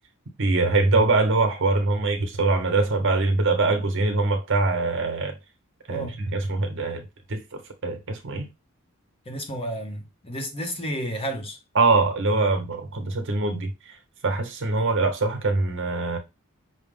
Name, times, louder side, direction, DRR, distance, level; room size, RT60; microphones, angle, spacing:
voice 1, 0.4-5.4 5.9-8.5 11.7-13.7 14.2-16.2, right 3 dB, 60° right, 1.0 m, -23 dB
voice 2, 9.3-11.6, right 1 dB, 25° left, 0.8 m, -31 dB
6.1 x 2.1 x 3.5 m
head